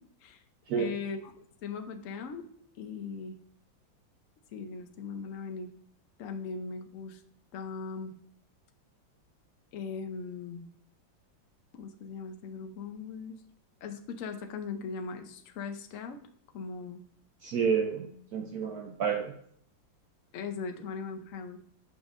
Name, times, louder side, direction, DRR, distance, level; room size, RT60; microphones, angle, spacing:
voice 1, 0.8-2.4 2.8-3.4 4.5-5.7 6.2-7.2 7.5-8.1 9.7-10.7 11.7-13.3 13.8-16.2 16.5-17.0 20.3-21.6, left 5 dB, 65° left, 6 dB, 0.8 m, -39 dB
voice 2, 17.4-19.3, right 6 dB, 65° right, 4 dB, 1.0 m, -30 dB
7.9 x 5.3 x 2.5 m, 0.64 s
omnidirectional pair, 2.1 m